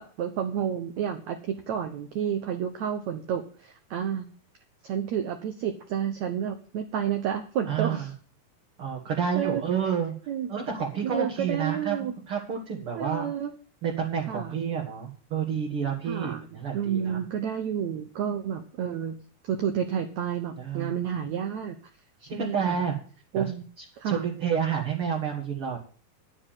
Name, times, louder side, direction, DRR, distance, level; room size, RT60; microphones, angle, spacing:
voice 1, 0.0-4.3 4.8-8.1 9.3-9.6 10.3-10.5 11.0-12.1 13.0-13.5 14.3-14.6 16.1-16.4 16.7-19.2 19.4-21.8 22.2-22.8 23.3-23.6 24.0-24.2, right 8 dB, 75° right, 6 dB, 1.6 m, -30 dB
voice 2, 7.7-8.1 8.8-10.1 10.5-13.3 13.8-17.2 20.6-20.9 22.4-23.0 23.3-23.5 23.8-25.8, right 7 dB, 45° right, -1 dB, 1.9 m, -29 dB
9.8 x 7.0 x 8.9 m, 0.43 s
omnidirectional pair, 4.5 m